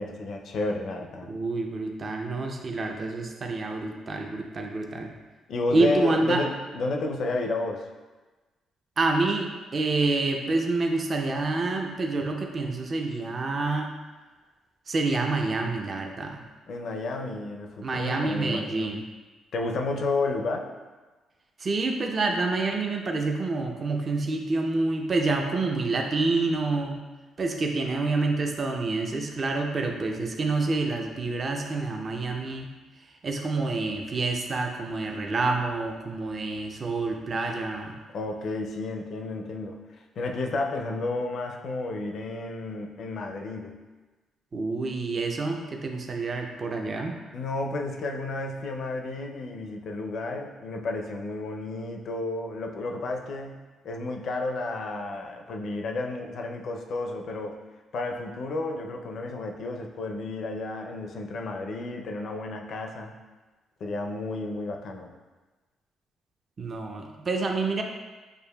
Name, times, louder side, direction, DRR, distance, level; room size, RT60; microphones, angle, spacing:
voice 1, 0.0-1.3 5.5-7.9 16.7-18.9 19.5-20.7 38.1-39.8 40.2-43.8 47.3-57.6 57.9-63.1 63.8-65.1, left 2 dB, 60° left, 3 dB, 0.5 m, -32 dB
voice 2, 1.3-5.1 5.7-6.4 9.0-13.9 14.9-16.4 17.8-19.0 21.6-27.0 27.4-32.7 33.0-38.0 44.5-47.2 66.6-67.8, right 3 dB, 40° right, 2 dB, 0.4 m, -27 dB
6.5 x 2.5 x 2.2 m, 1.2 s
cardioid pair, 90°, 0 cm